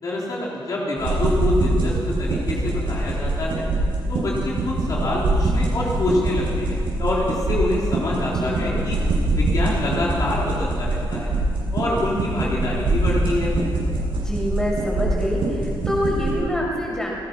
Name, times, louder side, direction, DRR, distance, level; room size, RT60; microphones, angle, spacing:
voice 1, 0.0-3.7 4.1-9.0 9.3-11.3 11.7-13.5, left 1 dB, 45° left, -5 dB, 3.7 m, -26 dB
sound 1, 1.0-16.3, right 2 dB, 75° right, 7.9 m, -24 dB
voice 2, 8.3-8.9 14.2-17.1, equal, 5° left, -3 dB, 6.0 m, -26 dB
28.5 x 18.0 x 6.0 m, 2.5 s
wide cardioid pair, 155°, 9 cm